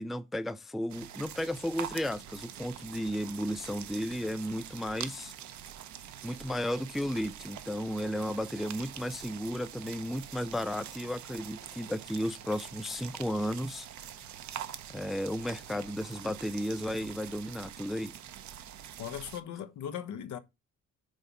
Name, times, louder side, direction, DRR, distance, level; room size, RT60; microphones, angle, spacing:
voice 1, 0.0-5.3 6.2-13.9 14.9-18.1, equal, ahead, 0.4 m, -34 dB
sound 1, 0.9-19.4, right 10 dB, 70° right, 0.9 m, -45 dB
voice 2, 19.0-20.4, left 9 dB, 75° left, 1.0 m, -38 dB
6.5 x 4.0 x 5.1 m
cardioid pair, 90°, 30 cm